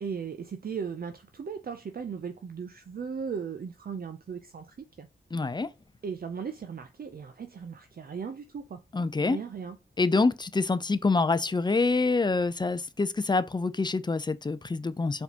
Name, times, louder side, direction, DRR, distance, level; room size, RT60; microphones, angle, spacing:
voice 1, 0.0-5.1 6.0-8.8 9.2-9.8, right 6 dB, 50° right, 0.5 m, -37 dB
voice 2, 5.3-5.7 8.9-9.4 10.0-15.2, left 3 dB, 20° left, 0.5 m, -26 dB
4.7 x 3.5 x 2.8 m
cardioid pair, 60°, 20 cm